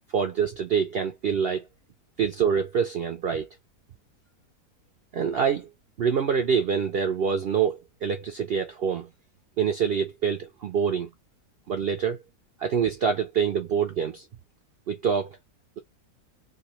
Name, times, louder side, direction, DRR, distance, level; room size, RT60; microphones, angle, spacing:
voice 1, 0.1-1.7 2.2-3.5 5.1-5.7 6.0-9.1 9.6-11.1 11.7-12.2 12.6-14.3 14.9-15.3, right 7 dB, 85° right, 0.5 m, -25 dB
3.6 x 2.7 x 3.0 m
omnidirectional pair, 1.7 m